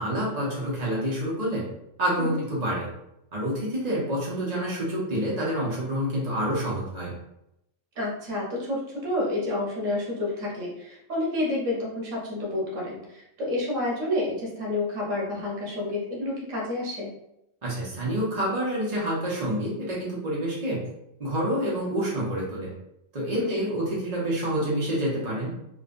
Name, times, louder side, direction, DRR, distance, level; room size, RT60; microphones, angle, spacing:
voice 1, 0.0-1.6 2.0-2.9 3.3-7.1 17.6-20.9 21.2-22.7 23.1-25.5, equal, 35° right, -5 dB, 1.0 m, -28 dB
voice 2, 8.0-17.1 23.3-23.6, left 2 dB, 85° right, -4 dB, 1.3 m, -29 dB
3.6 x 2.3 x 2.5 m, 0.82 s
omnidirectional pair, 1.3 m